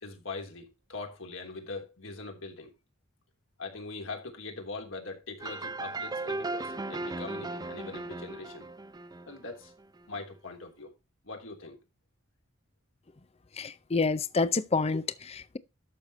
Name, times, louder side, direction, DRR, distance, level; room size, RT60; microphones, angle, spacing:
voice 1, 0.0-2.7 3.6-8.7 9.3-9.7 10.1-10.9 11.2-11.8, left 3 dB, 70° left, 3.4 m, -42 dB
sound 1, 5.4-10.0, right 2 dB, 20° right, 0.6 m, -37 dB
voice 2, 13.6-15.6, left 4 dB, 30° left, 0.6 m, -28 dB
12.0 x 6.6 x 4.2 m
head